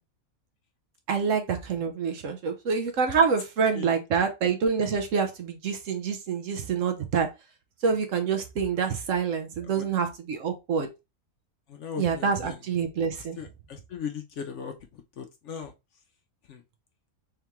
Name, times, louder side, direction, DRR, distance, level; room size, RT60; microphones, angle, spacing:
voice 1, 1.1-7.3 7.8-10.9 12.0-13.4, right 6 dB, 65° right, 1.1 m, -26 dB
voice 2, 11.7-12.5 13.4-14.7 15.2-15.7 16.5-16.6, left 7 dB, 65° left, 0.8 m, -38 dB
3.6 x 3.4 x 2.9 m
omnidirectional pair, 1.5 m